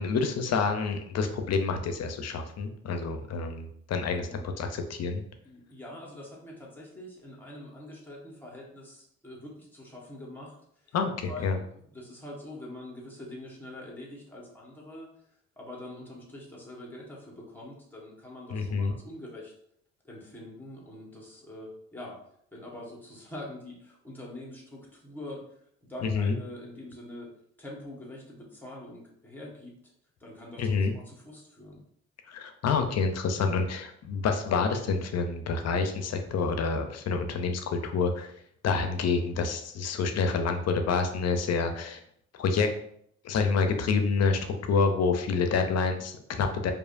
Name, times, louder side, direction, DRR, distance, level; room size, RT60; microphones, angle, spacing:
voice 1, 0.0-5.2 10.9-11.6 18.5-18.9 26.0-26.4 30.6-30.9 32.3-38.3 38.6-42.0 42.3-42.7 43.2-46.7, left 4 dB, 60° left, 6 dB, 0.6 m, -28 dB
voice 2, 4.0-4.4 5.4-10.6 10.8-10.9 11.3-15.1 15.6-19.5 20.0-22.2 22.5-25.4 25.9-27.3 27.6-29.7 30.2-31.8, left 1 dB, 5° left, -3 dB, 1.3 m, -44 dB
4.7 x 2.5 x 2.5 m, 0.69 s
cardioid pair, 90°, 30 cm